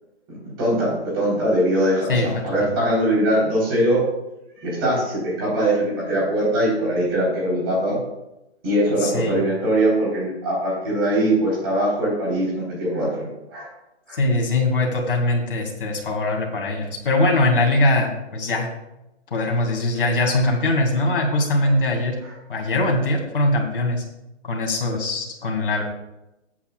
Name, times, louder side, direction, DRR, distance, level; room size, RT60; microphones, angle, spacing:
voice 1, 0.6-2.1 2.4-4.0 4.6-8.0 8.6-13.7 14.1-14.2 21.6-21.7 22.2-22.3, right 1 dB, 20° right, -6 dB, 3.9 m, -21 dB
voice 2, 9.0-9.4 14.1-18.7 19.3-22.1 22.5-24.0 24.4-25.8, left 2 dB, 50° left, 1 dB, 2.5 m, -21 dB
14.5 x 8.6 x 2.4 m, 0.93 s
hypercardioid pair, 175°, 35 cm